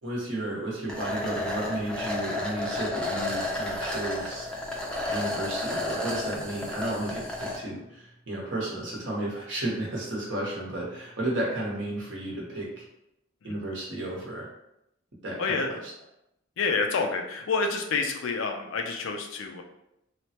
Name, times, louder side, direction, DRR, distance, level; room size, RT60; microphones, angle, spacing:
voice 1, 0.0-4.5 5.1-12.8 13.4-14.5 15.2-15.9, right 1 dB, 75° right, -3 dB, 0.9 m, -33 dB
sound 1, 0.9-7.6, left 1 dB, 5° left, 0.4 m, -32 dB
voice 2, 15.4-15.7 16.6-19.6, left 4 dB, 90° left, 3 dB, 0.4 m, -28 dB
3.2 x 2.0 x 2.8 m, 0.83 s
head